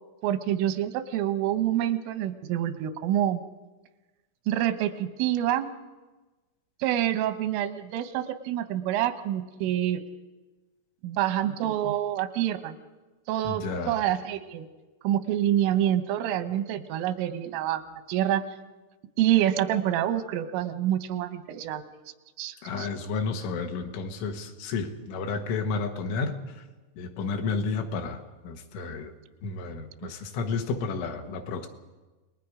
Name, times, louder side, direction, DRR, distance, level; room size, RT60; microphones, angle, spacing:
voice 1, 0.2-3.4 4.5-5.7 6.8-10.0 11.0-12.8 13.3-14.7 15.0-17.8 18.1-18.4 19.2-21.8 22.4-22.9, right 12 dB, 85° right, 10 dB, 3.5 m, -27 dB
voice 2, 13.5-14.0 22.6-26.3 27.0-29.1 29.4-31.7, left 4 dB, 80° left, 5 dB, 3.8 m, -31 dB
29.0 x 20.0 x 5.0 m, 1.2 s
omnidirectional pair, 5.6 m